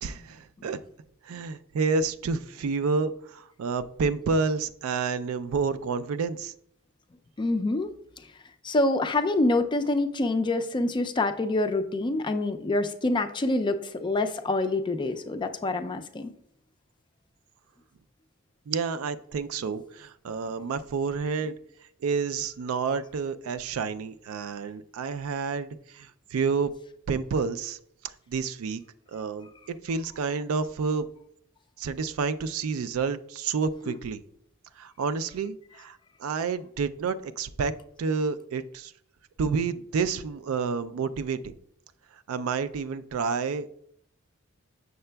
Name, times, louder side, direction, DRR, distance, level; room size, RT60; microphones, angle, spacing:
voice 1, 0.0-0.8 1.2-6.5 18.7-21.6 22.0-26.7 27.1-27.8 28.3-28.8 29.1-31.1 31.8-34.2 34.8-37.7 38.0-38.9 39.4-41.5 42.3-43.8, right 5 dB, 85° right, 12 dB, 0.4 m, -29 dB
voice 2, 7.4-7.9 8.6-16.3, left 2 dB, 20° left, 8 dB, 0.3 m, -26 dB
6.8 x 6.5 x 2.2 m, 0.71 s
head